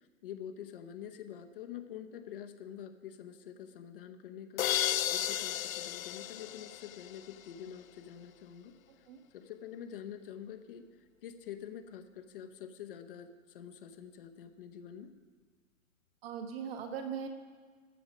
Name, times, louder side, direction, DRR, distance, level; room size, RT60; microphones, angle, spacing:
voice 1, 0.0-4.7 5.1-8.7 9.3-10.9 11.2-15.1, left 9 dB, 45° left, 6 dB, 0.8 m, -46 dB
sound 1, 4.6-7.4, left 12 dB, 80° left, 0.5 m, -34 dB
voice 2, 8.9-9.2 16.2-17.3, right 7 dB, 45° right, 4 dB, 1.5 m, -40 dB
13.0 x 7.7 x 5.1 m, 1.5 s
hypercardioid pair, 145°, 40 cm